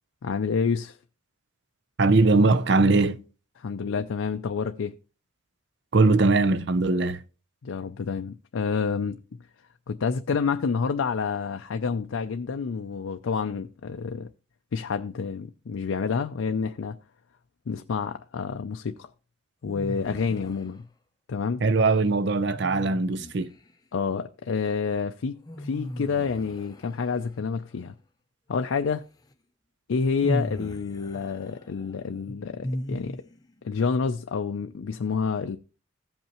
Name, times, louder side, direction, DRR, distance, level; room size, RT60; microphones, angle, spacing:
voice 1, 0.2-1.0 3.6-4.9 7.6-9.2 9.9-14.3 14.7-17.0 17.7-19.1 19.6-20.8 21.3-21.6 23.9-27.9 28.5-29.0 29.9-33.2 33.6-35.6, left 5 dB, 85° left, 0.4 m, -28 dB
voice 2, 2.0-3.2 5.9-7.2 21.6-23.5, right 3 dB, 60° right, 0.6 m, -21 dB
sound 1, 19.6-20.8 22.5-23.7 25.4-27.4 29.3-29.4 30.2-33.5, left 1 dB, 20° left, 0.5 m, -36 dB
16.0 x 5.5 x 2.9 m
head